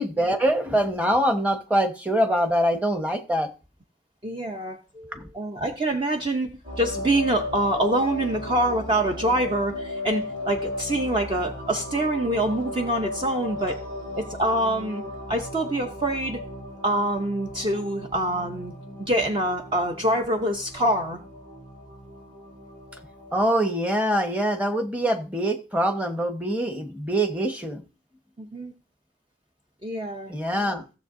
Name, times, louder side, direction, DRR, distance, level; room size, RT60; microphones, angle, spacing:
voice 1, 0.0-3.5 5.1-5.3 23.3-27.8 30.3-30.8, right 1 dB, 10° right, 5 dB, 1.1 m, -24 dB
voice 2, 4.2-13.8 14.2-15.0 15.3-16.4 16.8-18.7 19.1-21.2 28.4-28.7 29.8-30.3, right 1 dB, 30° right, 3 dB, 0.7 m, -25 dB
sound 1, 6.6-23.5, left 1 dB, 50° right, 5.9 m, -36 dB
16.0 x 7.1 x 2.6 m, 0.32 s
head